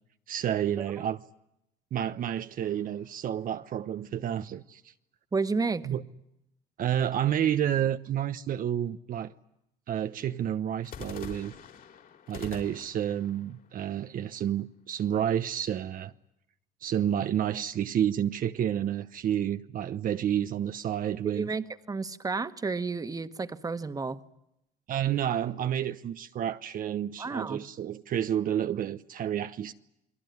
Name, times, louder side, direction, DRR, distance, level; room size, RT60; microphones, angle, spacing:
voice 1, 0.3-1.2 1.9-4.9 5.8-6.0 6.8-9.3 9.9-11.5 12.3-16.1 16.8-21.5 24.9-29.7, right 10 dB, 55° right, 1.0 m, -30 dB
sound 1, 2.6-4.1 10.8-14.8, left 8 dB, 55° left, 4.6 m, -47 dB
voice 2, 5.3-5.9 21.2-24.2 27.2-27.6, right 4 dB, 20° right, 1.5 m, -31 dB
29.5 x 21.0 x 9.5 m
cardioid pair, 110°, 17 cm